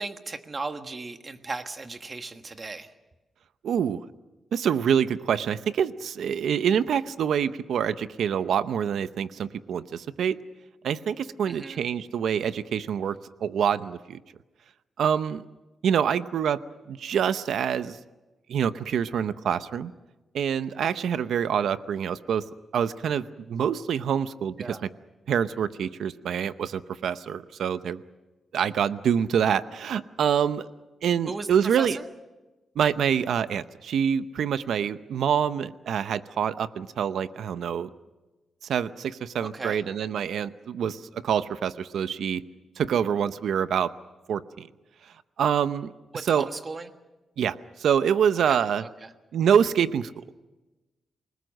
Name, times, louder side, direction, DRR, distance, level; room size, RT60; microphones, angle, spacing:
voice 1, 0.0-2.9 11.5-11.8 24.6-24.8 31.3-32.0 39.4-39.8 46.1-46.9 48.4-49.1, right 3 dB, 30° right, 8 dB, 1.4 m, -36 dB
voice 2, 3.6-4.0 4.5-10.4 10.8-14.2 15.0-15.4 15.8-16.6 16.9-18.0 18.5-19.9 20.3-22.4 22.7-24.8 25.3-28.0 28.5-30.7 31.0-32.0 32.8-37.9 38.6-42.4 42.8-43.9 44.3-44.7 45.4-45.9 46.2-46.5 47.4-48.8 49.3-50.4, right 8 dB, 80° right, 13 dB, 0.7 m, -26 dB
28.5 x 19.5 x 6.5 m, 1.1 s
wide cardioid pair, 145°, 0 cm